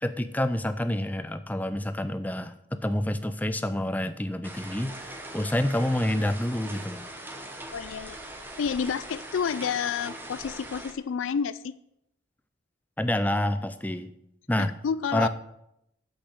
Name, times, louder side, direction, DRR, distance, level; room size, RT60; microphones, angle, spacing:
voice 1, 0.0-7.0 13.0-14.1 14.5-14.7 15.1-15.3, left 1 dB, 10° left, 11 dB, 0.5 m, -28 dB
sound 1, 4.4-10.9, right 1 dB, 10° right, 1.0 m, -41 dB
voice 2, 7.7-8.2 8.6-11.7 14.6-15.3, left 6 dB, 80° left, 15 dB, 0.4 m, -30 dB
8.4 x 6.3 x 7.9 m, 0.80 s
head